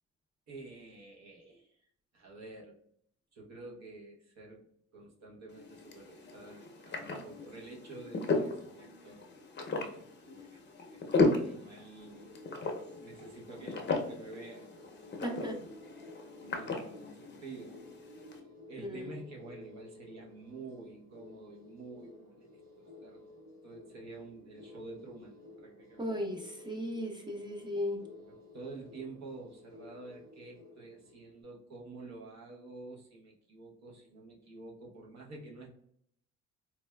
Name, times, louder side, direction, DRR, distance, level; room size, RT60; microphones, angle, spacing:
voice 1, 0.5-2.8 3.3-9.3 9.7-10.6 10.9-12.3 13.0-15.7 16.0-17.8 18.7-22.5 22.8-23.3 23.6-26.2 28.2-35.7, right 3 dB, 60° right, -1 dB, 0.9 m, -49 dB
sound 1, 5.5-18.4, left 3 dB, 35° left, 0.6 m, -36 dB
sound 2, 12.0-31.4, left 2 dB, 75° right, 1.3 m, -55 dB
voice 2, 15.2-15.6 18.8-19.2 26.0-28.0, equal, 15° right, 1 dB, 0.6 m, -36 dB
4.1 x 2.3 x 2.2 m, 0.69 s
cardioid pair, 90°, 30 cm